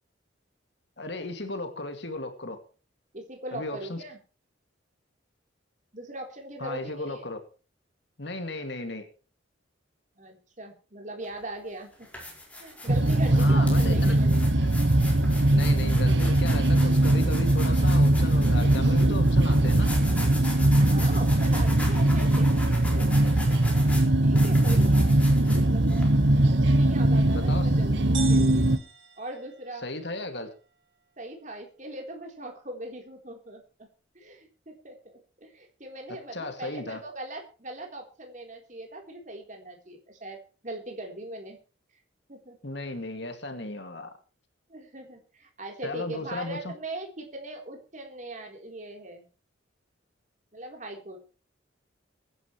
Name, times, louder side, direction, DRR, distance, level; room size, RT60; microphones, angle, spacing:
voice 1, 1.0-2.6 3.5-4.0 6.6-7.4 8.2-9.1 13.3-14.2 15.5-19.9 27.3-27.8 29.8-30.5 36.3-37.0 42.6-44.1 45.8-46.7, left 2 dB, 60° left, 6 dB, 2.3 m, -35 dB
voice 2, 3.1-4.2 5.9-7.3 10.2-11.9 12.6-14.4 20.8-25.0 25.5-25.9 26.4-28.7 29.2-29.8 31.2-33.9 34.1-41.6 42.3-42.6 44.7-49.3 50.5-51.2, right 1 dB, 40° right, 2 dB, 3.8 m, -40 dB
sound 1, 11.2-11.4 11.9-26.0, left 1 dB, 5° left, 5.0 m, -40 dB
sound 2, 12.9-28.8, right 1 dB, 65° right, 1.2 m, -21 dB
sound 3, 28.1-30.1, right 7 dB, 90° right, 2.9 m, -41 dB
23.0 x 10.5 x 3.2 m, 0.36 s
head